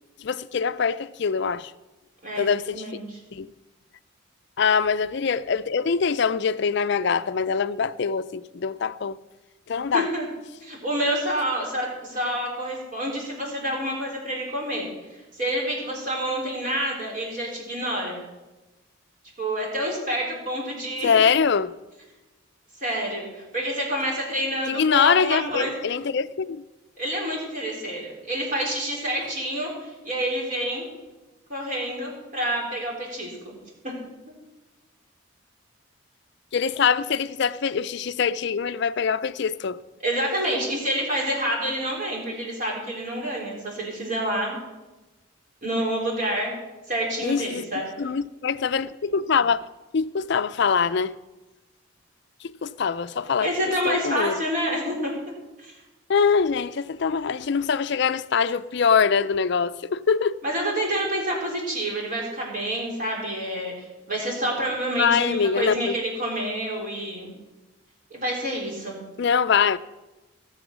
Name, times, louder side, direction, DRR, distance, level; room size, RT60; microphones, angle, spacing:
voice 1, 0.2-1.7 2.4-3.0 3.3-3.5 4.6-9.2 9.7-10.1 21.0-21.7 24.7-26.6 36.5-39.8 47.2-47.6 48.0-49.7 49.9-51.2 52.4-53.5 53.8-54.4 56.1-60.4 65.0-66.0 69.2-69.8, left 6 dB, 55° left, 0.4 m, -23 dB
voice 2, 2.2-3.2 9.9-10.3 10.6-18.2 19.4-21.1 22.8-25.7 27.0-30.9 31.5-33.5 33.8-33.9 40.0-44.6 45.6-46.5 46.9-47.9 53.4-55.1 55.6-55.7 60.4-67.3 68.1-69.0, right 1 dB, 40° right, 3.9 m, -28 dB
17.5 x 7.0 x 6.1 m
head